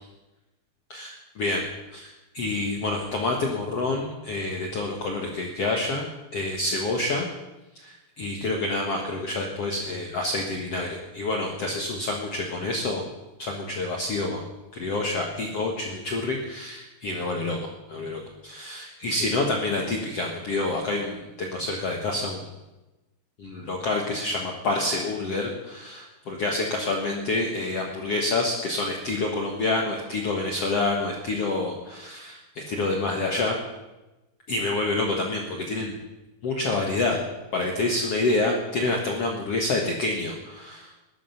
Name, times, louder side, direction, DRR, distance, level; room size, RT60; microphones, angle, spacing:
voice 1, 0.9-6.1 6.3-7.3 7.7-13.0 13.4-14.4 14.7-22.5 23.4-33.5 34.5-35.9 36.4-37.2 37.5-40.9, left 2 dB, 65° left, 0 dB, 1.5 m, -28 dB
20.0 x 11.5 x 5.8 m, 1.0 s
omnidirectional pair, 5.2 m